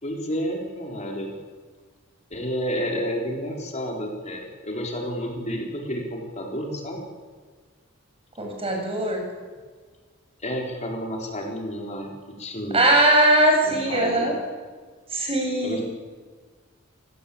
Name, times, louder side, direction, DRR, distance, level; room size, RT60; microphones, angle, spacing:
voice 1, 0.0-1.4 2.3-7.1 10.4-12.1 12.4-12.9 13.6-14.3 15.6-15.8, equal, 35° left, 0 dB, 4.4 m, -30 dB
voice 2, 8.4-9.2 12.7-14.3 15.1-15.8, right 1 dB, 30° right, 2 dB, 7.3 m, -20 dB
28.5 x 18.0 x 8.8 m, 1.5 s
head